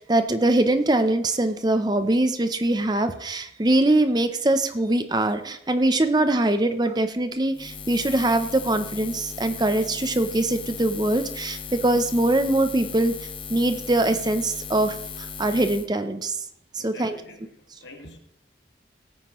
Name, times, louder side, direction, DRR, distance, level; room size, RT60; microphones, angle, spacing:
voice 1, 0.0-16.4 16.7-17.2, right 1 dB, 25° right, 9 dB, 0.6 m, -23 dB
Buzz, 7.5-15.9, left 6 dB, 30° left, 0.6 m, -37 dB
voice 2, 16.8-18.2, left 2 dB, 75° left, 4 dB, 1.8 m, -46 dB
17.0 x 9.0 x 3.1 m, 0.76 s
head